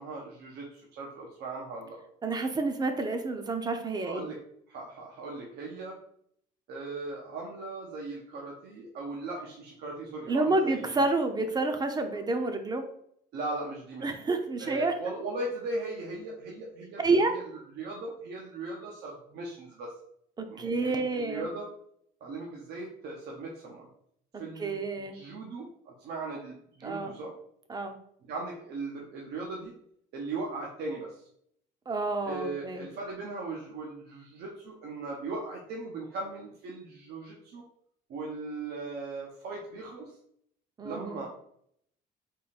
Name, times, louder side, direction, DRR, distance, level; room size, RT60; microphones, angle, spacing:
voice 1, 0.0-2.0 4.0-4.4 4.7-6.0 6.7-11.0 13.3-14.1 14.6-17.5 17.8-19.9 20.5-21.7 22.2-23.9 24.3-27.3 28.3-29.7 30.1-31.3 32.2-37.6 38.1-40.2 40.8-41.3, right 3 dB, 75° right, -2 dB, 0.8 m, -38 dB
voice 2, 2.2-4.2 10.3-12.9 14.0-14.9 17.0-17.4 20.4-21.5 24.6-25.2 26.8-27.1 27.7-28.0 31.9-32.8 40.8-41.2, right 3 dB, 25° right, 7 dB, 0.6 m, -29 dB
3.7 x 2.5 x 4.1 m, 0.69 s
cardioid pair, 110°, 17 cm